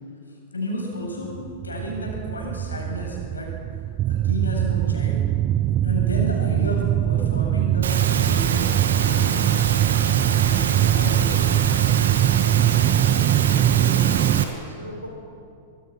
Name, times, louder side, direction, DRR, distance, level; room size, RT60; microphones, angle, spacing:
voice 1, 0.5-1.3 1.6-3.5 4.0-5.2 5.8-8.7 8.9-9.4 10.4-11.5, left 1 dB, 80° left, -1 dB, 7.5 m, -31 dB
sound 1, 1.3-14.5, right 13 dB, 35° right, 0.4 m, -22 dB
Engine / Mechanisms, 7.8-14.4, right 6 dB, 65° right, 2.1 m, -26 dB
voice 2, 13.6-15.1, equal, 90° right, 0 dB, 6.2 m, -38 dB
25.5 x 22.0 x 5.9 m, 2.5 s
figure-of-eight pair, 95°, 0 cm